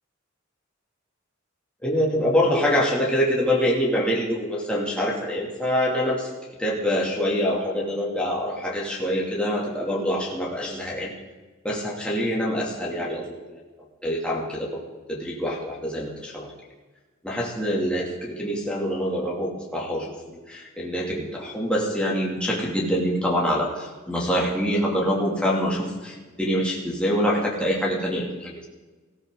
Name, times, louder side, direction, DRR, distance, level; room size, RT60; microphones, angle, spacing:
voice 1, 1.8-6.3 6.6-11.1 11.6-13.6 14.0-16.5 17.2-28.7, equal, 5° left, -4 dB, 2.6 m, -25 dB
19.5 x 15.0 x 3.9 m, 1.3 s
head